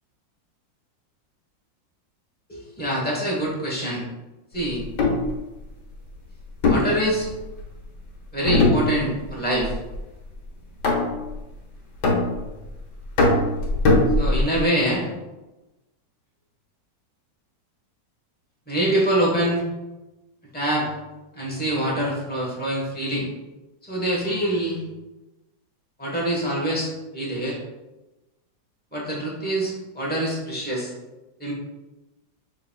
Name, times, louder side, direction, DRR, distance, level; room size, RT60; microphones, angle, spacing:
voice 1, 2.5-4.0 4.5-4.8 6.7-7.3 8.3-9.7 14.2-15.0 18.7-19.6 20.5-20.9 21.3-23.3 23.8-24.8 26.0-27.6 28.9-30.9 31.4-31.5, right 1 dB, 10° left, -4 dB, 0.7 m, -25 dB
sound 1, 4.8-5.3 6.6-7.7 8.5-9.3 9.6-10.0 10.8-11.3 12.0-12.7 13.2-14.6, left 2 dB, 70° left, 1.5 m, -20 dB
5.7 x 3.8 x 2.2 m, 1.1 s
omnidirectional pair, 2.0 m